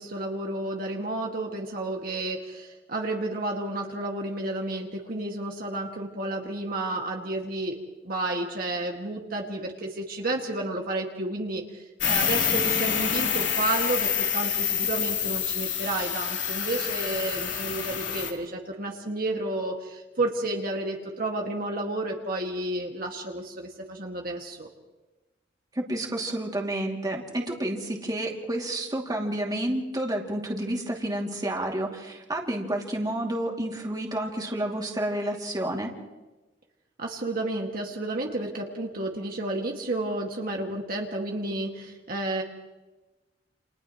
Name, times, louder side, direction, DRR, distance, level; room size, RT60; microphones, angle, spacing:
voice 1, 0.0-7.7 8.0-24.7 37.0-42.4, right 2 dB, 55° right, 0 dB, 2.1 m, -31 dB
sound 1, 12.0-18.3, left 8 dB, 90° left, 3.3 m, -27 dB
voice 2, 25.7-35.9, right 1 dB, 20° right, 0 dB, 2.6 m, -30 dB
29.5 x 28.5 x 3.1 m, 1.1 s
head